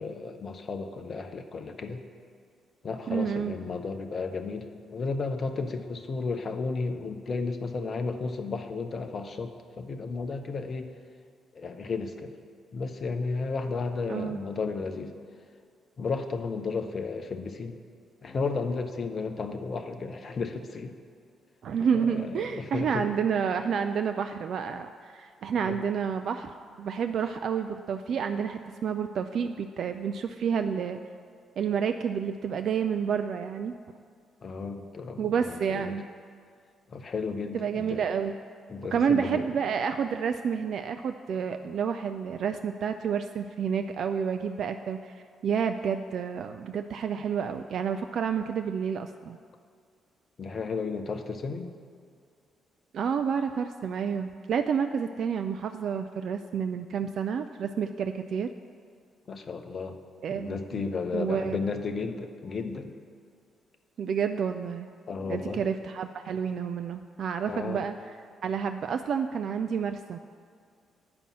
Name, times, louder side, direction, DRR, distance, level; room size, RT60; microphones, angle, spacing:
voice 1, 0.0-2.0 2.8-10.9 11.5-12.3 12.7-15.1 16.0-17.8 18.2-21.0 21.9-23.1 25.6-25.8 34.4-35.9 36.9-38.1 38.7-39.5 50.4-51.7 59.3-60.0 60.3-62.9 65.1-65.6 67.5-67.8, left 4 dB, 45° left, 6 dB, 0.7 m, -33 dB
voice 2, 3.1-3.6 14.1-14.4 21.6-26.5 26.8-31.0 31.6-33.7 35.2-36.1 37.5-38.3 38.9-49.4 52.9-58.5 60.2-60.8 61.1-61.6 64.0-64.9 65.3-67.9 68.4-70.2, right 7 dB, 55° right, 7 dB, 0.3 m, -29 dB
8.8 x 5.3 x 7.3 m, 2.1 s
figure-of-eight pair, 40°, 0 cm